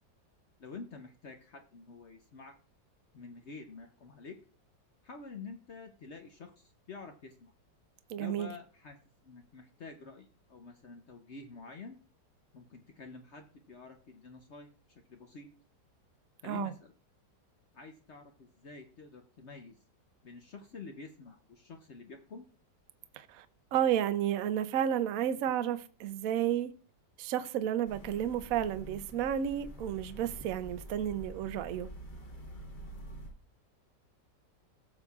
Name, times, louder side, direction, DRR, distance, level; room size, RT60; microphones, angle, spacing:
voice 1, 0.6-2.5 3.1-4.4 5.0-7.5 8.2-9.0 9.2-12.0 12.5-15.5 16.4-16.9 17.7-19.8 20.2-22.5, left 4 dB, 55° left, 0.8 m, -48 dB
voice 2, 8.1-8.5 16.4-16.7 23.2-23.5 23.7-26.7 27.2-31.9, right 10 dB, 65° right, 0.9 m, -32 dB
sound 1, 27.8-33.3, right 1 dB, 30° left, 1.3 m, -47 dB
17.0 x 6.8 x 2.4 m
omnidirectional pair, 1.9 m